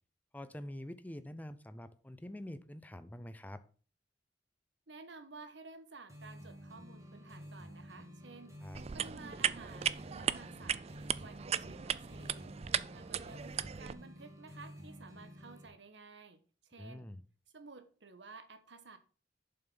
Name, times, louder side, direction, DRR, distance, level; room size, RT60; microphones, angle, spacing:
voice 1, 0.3-3.6 8.6-8.8 16.8-17.2, left 1 dB, 10° left, 0.6 m, -46 dB
voice 2, 4.9-10.8 11.2-12.6 12.9-17.1 17.5-19.0, right 3 dB, 90° right, 1.2 m, -53 dB
sound 1, 6.1-15.7, equal, 20° right, 2.4 m, -51 dB
sound 2, 8.7-13.9, right 8 dB, 35° right, 0.4 m, -37 dB
7.4 x 5.8 x 5.3 m
head